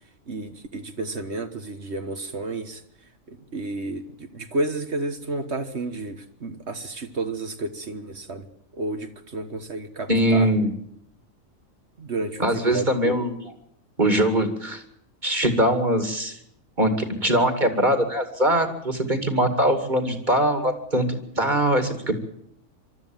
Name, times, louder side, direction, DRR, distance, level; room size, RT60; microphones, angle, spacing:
voice 1, 0.3-2.8 3.3-8.4 8.7-10.5 12.0-13.1, right 2 dB, 55° right, 8 dB, 1.7 m, -31 dB
voice 2, 10.1-10.7 12.4-13.3 14.0-14.8 15.2-16.4 16.8-22.2, right 1 dB, 35° right, 7 dB, 2.6 m, -22 dB
24.0 x 13.0 x 9.0 m, 0.71 s
omnidirectional pair, 1.4 m